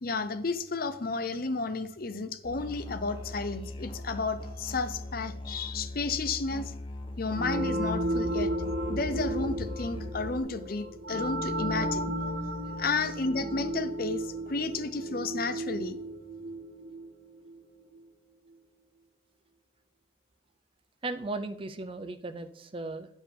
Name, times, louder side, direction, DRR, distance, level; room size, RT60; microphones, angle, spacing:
voice 1, 0.0-6.7 7.2-8.5 8.9-12.1 12.6-16.0, left 3 dB, 50° left, 11 dB, 0.7 m, -32 dB
Musical instrument, 2.4-10.4, left 1 dB, 25° left, 1.0 m, -40 dB
sound 1, 7.3-17.8, right 1 dB, 60° right, 1.6 m, -34 dB
voice 2, 21.0-23.1, right 2 dB, 25° right, 10 dB, 0.5 m, -36 dB
10.5 x 7.1 x 3.7 m, 0.76 s
head